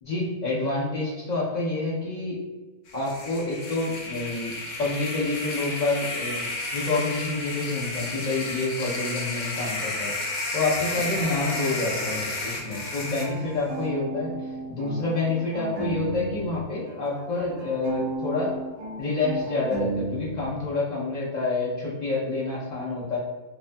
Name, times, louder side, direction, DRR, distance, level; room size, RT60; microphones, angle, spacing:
voice 1, 0.0-2.3 2.9-4.5 4.8-10.1 10.5-18.5 19.0-23.2, left 3 dB, 60° left, -7 dB, 0.4 m, -28 dB
sound 1, 2.9-13.3, left 2 dB, 80° left, 1.0 m, -32 dB
sound 2, 10.7-13.1, right 1 dB, 35° right, 0.9 m, -39 dB
sound 3, 12.7-16.6 16.9-20.7, right 3 dB, 70° right, 0.9 m, -34 dB
2.7 x 2.2 x 2.5 m, 1.2 s
omnidirectional pair, 1.4 m